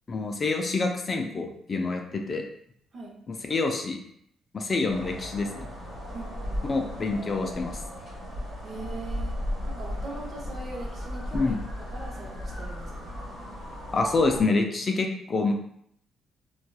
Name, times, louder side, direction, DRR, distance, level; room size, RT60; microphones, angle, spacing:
voice 1, 0.1-2.4 3.3-4.0 4.5-5.7 6.7-7.8 11.3-11.6 13.9-15.6, left 3 dB, 40° left, 3 dB, 0.3 m, -27 dB
sound 1, 4.9-14.4, equal, 60° right, 1.3 m, -36 dB
voice 2, 6.1-6.7 8.6-11.6 11.9-13.2, right 2 dB, 45° right, -1 dB, 0.8 m, -41 dB
2.7 x 2.3 x 2.3 m, 0.70 s
cardioid pair, 90°, 0 cm